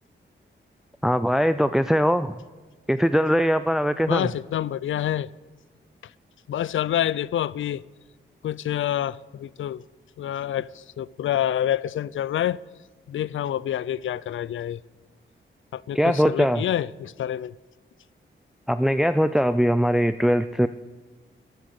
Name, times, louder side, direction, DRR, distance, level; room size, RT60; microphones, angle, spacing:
voice 1, 1.0-2.4 2.9-4.3 15.9-16.6 18.7-20.7, equal, ahead, 12 dB, 0.3 m, -21 dB
voice 2, 4.1-5.3 6.5-7.8 8.4-9.8 10.2-12.6 13.1-14.8 15.7-17.5, left 11 dB, 80° left, 21 dB, 0.4 m, -27 dB
14.5 x 10.5 x 6.5 m, 1.3 s
wide cardioid pair, 130°, 20 cm